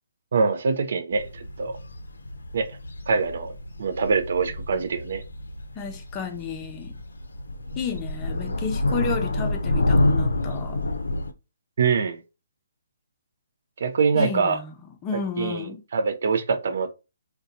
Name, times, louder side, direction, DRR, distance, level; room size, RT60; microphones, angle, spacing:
voice 1, 0.3-1.8 2.5-2.8 3.1-3.5 3.8-5.2 11.8-12.2 13.8-14.6 15.1-16.9, right 5 dB, 60° right, 0.5 m, -24 dB
sound 1, 1.1-11.3, left 1 dB, 90° left, 0.5 m, -28 dB
voice 2, 5.8-7.0 7.8-10.8 14.1-14.7 15.0-15.8, left 5 dB, 20° left, 0.5 m, -32 dB
2.7 x 2.2 x 3.9 m
hypercardioid pair, 150°, 0 cm